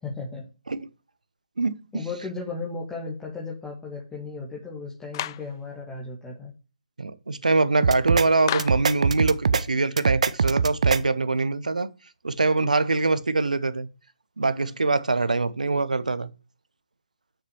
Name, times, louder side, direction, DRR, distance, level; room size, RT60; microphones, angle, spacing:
voice 1, 0.0-0.5 1.9-6.5, left 3 dB, 10° left, 2.1 m, -35 dB
voice 2, 1.6-2.1 7.0-11.9 12.2-13.9 14.4-16.3, right 3 dB, 75° right, 1.1 m, -24 dB
Clapping, 5.1-5.5 8.5-8.9, left 13 dB, 30° left, 0.4 m, -30 dB
sound 1, 7.8-8.3 8.6-9.6 10.0-11.0, right 5 dB, 60° right, 0.7 m, -22 dB
7.2 x 6.0 x 7.1 m
figure-of-eight pair, 145°, 4 cm